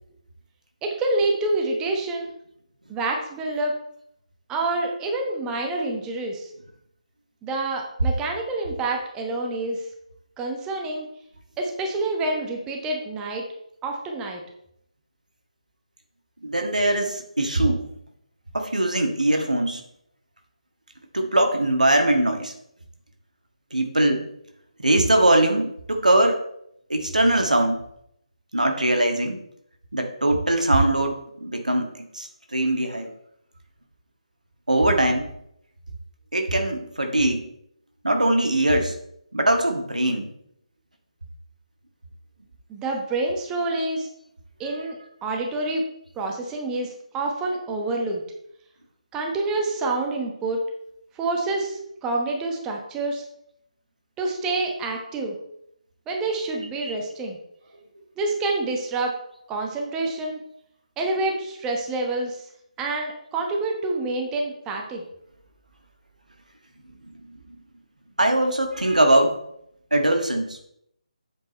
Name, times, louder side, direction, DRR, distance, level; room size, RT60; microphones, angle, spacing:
voice 1, 0.8-2.3 2.9-3.8 4.5-6.5 7.4-9.9 10.4-11.1 11.6-13.4 13.8-14.4 42.7-44.1 44.6-45.8 46.1-48.2 49.1-50.6 51.1-53.2 54.2-55.4 56.1-57.4 58.2-59.2 59.5-60.4 61.0-62.4 62.8-65.0, right 2 dB, 10° right, 1 dB, 1.0 m, -27 dB
voice 2, 16.4-17.8 18.5-19.8 21.1-22.5 23.7-24.2 24.8-26.4 26.9-27.8 28.5-29.4 29.9-33.1 34.7-35.3 36.3-37.5 38.0-38.9 39.3-40.3 44.7-44.8 56.8-56.9 67.3-67.4 68.2-69.3 69.9-70.6, right 1 dB, 85° right, 4 dB, 1.6 m, -21 dB
7.5 x 6.0 x 4.4 m, 0.74 s
figure-of-eight pair, 150°, 4 cm